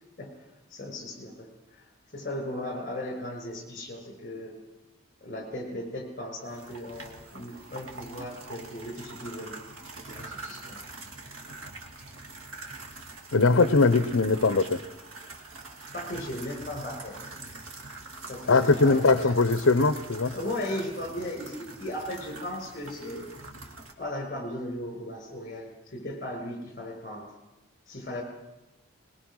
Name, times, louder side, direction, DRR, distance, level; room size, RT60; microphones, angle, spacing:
voice 1, 0.7-1.8 2.1-4.6 5.2-9.6 10.1-10.8 15.9-17.2 18.3-19.3 20.3-23.3 24.0-27.3 27.9-28.2, left 1 dB, 40° left, 4 dB, 5.5 m, -37 dB
sound 1, 6.4-23.9, right 2 dB, 75° right, 2.6 m, -44 dB
voice 2, 13.3-14.8 18.5-20.3, left 3 dB, 65° left, 12 dB, 0.7 m, -21 dB
21.5 x 21.0 x 6.3 m, 1.0 s
head